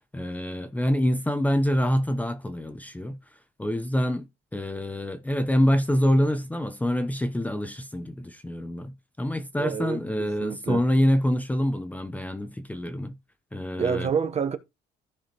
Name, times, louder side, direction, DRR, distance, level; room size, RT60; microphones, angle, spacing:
voice 1, 0.1-3.2 3.6-4.3 4.5-13.2 13.5-14.1, equal, 10° left, 0.7 m, -26 dB
voice 2, 9.6-10.8 13.7-14.6, right 6 dB, 40° right, 1.0 m, -28 dB
14.5 x 4.9 x 3.0 m
cardioid pair, 110°, 17 cm